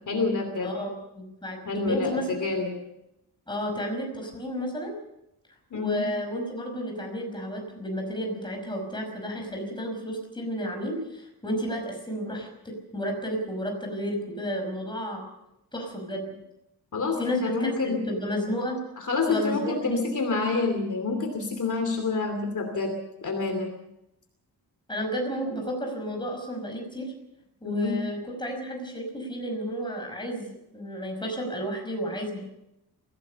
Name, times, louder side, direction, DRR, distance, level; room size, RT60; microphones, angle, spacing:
voice 1, 0.1-0.7 1.6-2.8 5.7-6.1 16.9-18.0 19.0-22.9 23.2-23.7 27.6-28.0, left 3 dB, 50° left, 5 dB, 2.8 m, -27 dB
voice 2, 0.6-2.5 3.5-4.9 5.7-15.3 15.7-16.3 17.2-18.8 19.3-20.0 24.9-27.1 27.6-32.4, equal, 10° left, 2 dB, 5.5 m, -32 dB
23.0 x 17.0 x 6.8 m, 0.85 s
wide cardioid pair, 180°, 40 cm